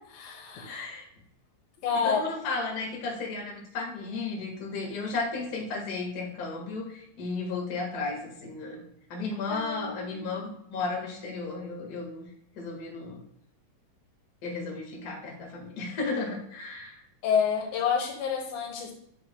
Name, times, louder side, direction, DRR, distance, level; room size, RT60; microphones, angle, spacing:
voice 1, 0.1-0.9 1.8-2.2 9.5-10.4 17.2-18.9, left 6 dB, 90° left, 2 dB, 3.1 m, -29 dB
voice 2, 0.7-1.0 2.0-8.8 9.1-12.3 12.5-13.2 14.4-17.0, left 3 dB, 40° left, -1 dB, 1.6 m, -34 dB
8.2 x 6.6 x 2.3 m, 0.75 s
omnidirectional pair, 3.9 m